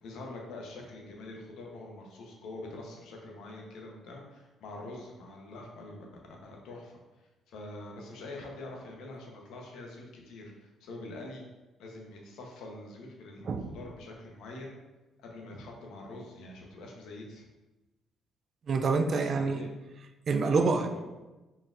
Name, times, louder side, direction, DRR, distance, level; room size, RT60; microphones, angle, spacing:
voice 1, 0.0-6.1 6.4-11.4 11.8-14.8 15.2-17.5 19.1-19.7 20.4-21.0, left 2 dB, 80° left, 0 dB, 0.8 m, -45 dB
voice 2, 18.7-19.7 20.3-20.9, right 4 dB, 50° right, 7 dB, 0.3 m, -27 dB
4.1 x 3.6 x 2.5 m, 1.1 s
cardioid pair, 95°, 0 cm